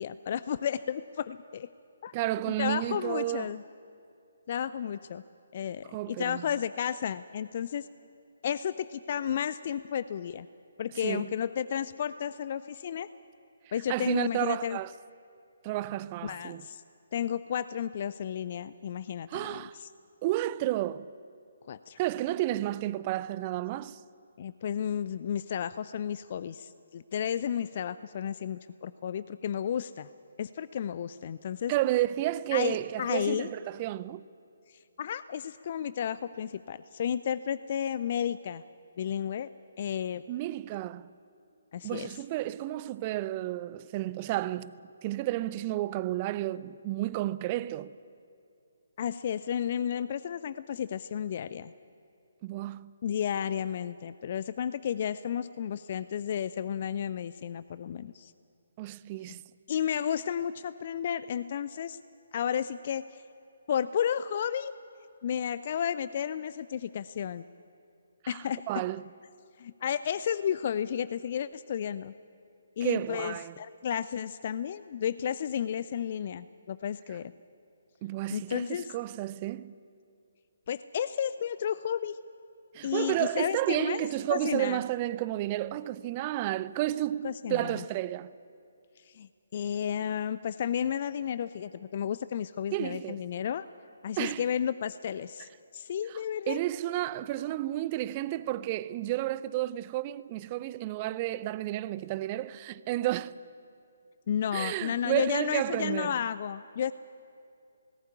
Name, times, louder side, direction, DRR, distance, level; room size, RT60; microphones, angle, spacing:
voice 1, 0.0-1.7 2.0-2.1 2.4-3.6 4.5-5.2 5.5-7.9 8.4-10.5 10.8-13.1 13.7-14.8 16.2-16.8 17.1-19.9 21.7-22.0 24.4-30.1 30.4-31.7 32.5-33.5 34.7-38.6 39.0-39.5 39.8-40.2 41.7-42.1 49.0-51.7 53.0-58.3 59.7-62.0 62.3-63.2 63.7-64.7 65.2-67.4 68.3-68.8 69.6-72.1 72.8-77.3 78.3-78.9 80.7-82.2 82.8-84.8 87.2-87.8 89.0-93.7 94.0-96.6 104.3-106.9, left 9 dB, 40° left, 0.4 m, -32 dB
voice 2, 2.1-3.5 5.9-6.5 11.0-11.3 13.9-14.9 15.6-16.6 19.3-19.8 20.2-21.1 22.0-24.0 31.7-34.2 40.3-41.1 41.8-44.7 45.0-47.9 52.4-52.9 58.8-59.4 68.2-69.1 72.8-73.6 78.0-79.7 82.7-88.4 92.7-93.3 94.2-94.4 96.5-103.3 104.5-106.1, right 15 dB, 25° right, 0.4 m, -31 dB
18.5 x 16.0 x 9.9 m
figure-of-eight pair, 140°, 0 cm